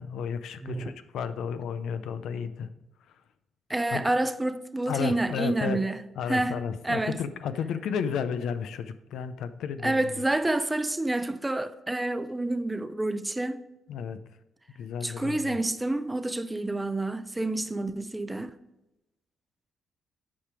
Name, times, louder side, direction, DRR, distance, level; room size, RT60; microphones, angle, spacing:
voice 1, 0.0-2.7 3.9-4.0 4.9-5.8 6.2-10.0 13.9-14.2 14.7-15.6, left 7 dB, 75° left, 0.5 m, -33 dB
voice 2, 0.6-0.9 3.7-6.0 6.3-6.6 6.8-7.2 9.8-13.6 15.0-18.6, right 2 dB, 10° right, 0.5 m, -28 dB
8.7 x 5.1 x 4.8 m
cardioid pair, 90°, 0 cm